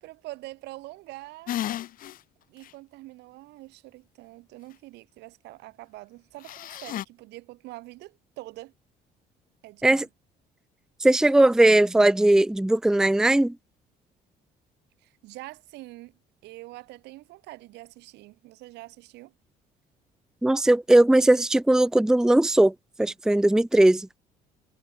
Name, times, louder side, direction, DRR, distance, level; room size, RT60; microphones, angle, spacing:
voice 1, 0.0-1.5 2.5-8.7 9.6-10.1 15.0-16.1 16.4-19.3, right 19 dB, 90° right, 7.0 m, -44 dB
sound 1, 1.5-2.2 2.6-2.7 6.4-7.0, left 13 dB, 55° left, 0.6 m, -33 dB
voice 2, 11.0-13.5 20.4-22.7 23.0-24.1, right 1 dB, 5° right, 0.6 m, -19 dB
cardioid pair, 110°, 17 cm